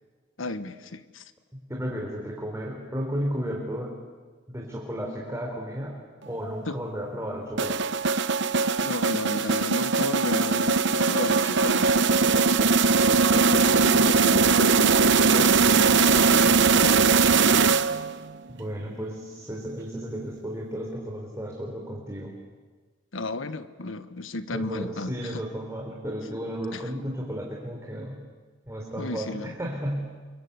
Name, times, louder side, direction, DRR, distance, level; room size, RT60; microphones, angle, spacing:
voice 1, 0.4-1.2 6.7-6.8 8.8-12.3 13.3-17.0 23.1-25.4 26.7-26.8 29.0-29.5, left 2 dB, 90° left, 11 dB, 1.3 m, -33 dB
voice 2, 1.7-4.0 4.5-7.9 18.6-22.3 24.5-28.2 28.7-30.0, equal, 15° right, -1 dB, 3.8 m, -33 dB
sound 1, 7.6-18.2, right 4 dB, 65° right, 0.9 m, -20 dB
29.5 x 24.0 x 8.3 m, 1.4 s
head